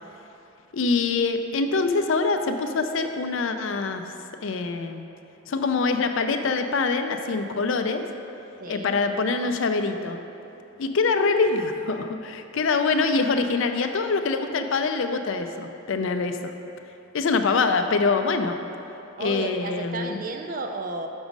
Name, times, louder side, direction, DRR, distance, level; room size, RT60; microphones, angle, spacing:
voice 1, 0.7-4.0 4.4-5.1 5.5-8.0 8.7-10.2 10.8-16.5 17.1-18.5 19.2-20.2, left 4 dB, 60° left, 7 dB, 0.4 m, -24 dB
voice 2, 8.6-9.0 19.2-21.1, right 2 dB, 40° right, 5 dB, 0.4 m, -32 dB
6.2 x 6.0 x 5.2 m, 2.9 s
head